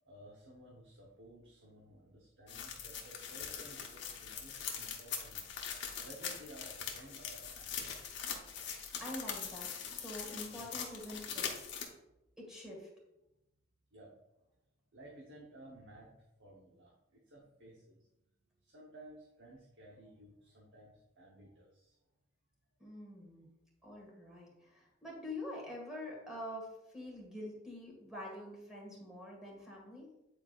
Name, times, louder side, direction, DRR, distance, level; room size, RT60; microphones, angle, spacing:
voice 1, 0.1-5.4 6.0-7.8 13.9-14.1 14.9-16.1 16.4-18.0 18.6-22.0, right 1 dB, 60° right, -2 dB, 1.0 m, -55 dB
sound 1, 2.5-11.9, left 7 dB, 60° left, 1.0 m, -42 dB
voice 2, 9.0-11.6 12.4-12.9 22.8-23.5 23.8-30.1, left 1 dB, 5° right, -3 dB, 1.8 m, -46 dB
8.8 x 4.4 x 2.5 m, 0.91 s
head